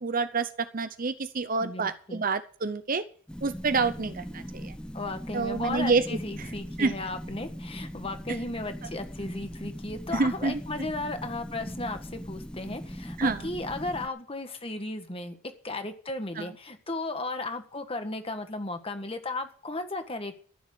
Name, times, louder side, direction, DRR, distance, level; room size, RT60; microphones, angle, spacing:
voice 1, 0.0-3.0 3.4-4.7 5.3-6.5 6.8-6.9 10.1-10.6 13.2-13.5 16.4-16.5, right 4 dB, 40° right, 12 dB, 0.7 m, -28 dB
voice 2, 1.6-2.2 4.9-15.4 15.6-20.4, left 2 dB, 25° left, 7 dB, 1.5 m, -35 dB
sound 1, 3.3-14.1, equal, 5° left, 0.7 m, -40 dB
13.5 x 7.3 x 8.5 m, 0.43 s
head